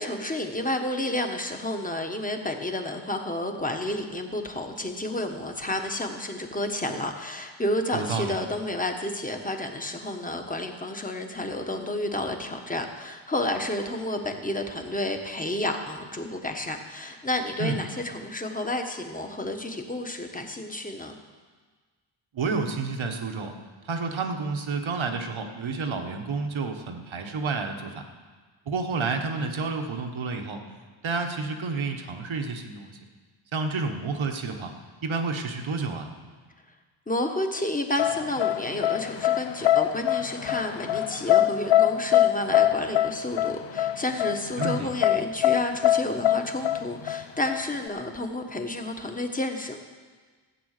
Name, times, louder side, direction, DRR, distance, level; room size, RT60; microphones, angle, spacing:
voice 1, 0.0-21.1 37.1-49.8, left 1 dB, 15° left, 4 dB, 1.3 m, -31 dB
voice 2, 7.9-8.4 17.6-17.8 22.3-23.5 23.8-28.0 28.7-30.6 31.0-32.9 33.5-34.7 35.0-36.1 44.6-44.9, right 4 dB, 75° right, 4 dB, 1.5 m, -30 dB
sound 1, 38.0-47.9, left 12 dB, 65° left, 0.5 m, -23 dB
15.0 x 8.6 x 6.7 m, 1.4 s
wide cardioid pair, 115°, 48 cm